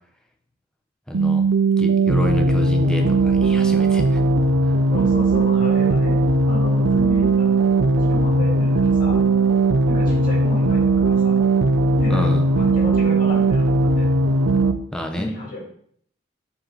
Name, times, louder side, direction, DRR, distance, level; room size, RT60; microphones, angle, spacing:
voice 1, 1.1-1.5 1.8-4.2 4.6-4.8 12.1-12.5 14.9-15.3, equal, 5° left, 2 dB, 0.7 m, -28 dB
sound 1, 1.1-14.7, right 3 dB, 80° right, 0.5 m, -18 dB
voice 2, 4.9-7.5 7.9-9.2 9.9-11.4 12.0-14.1 15.2-15.6, left 1 dB, 45° left, -4 dB, 2.6 m, -32 dB
7.1 x 3.5 x 3.9 m, 0.63 s
head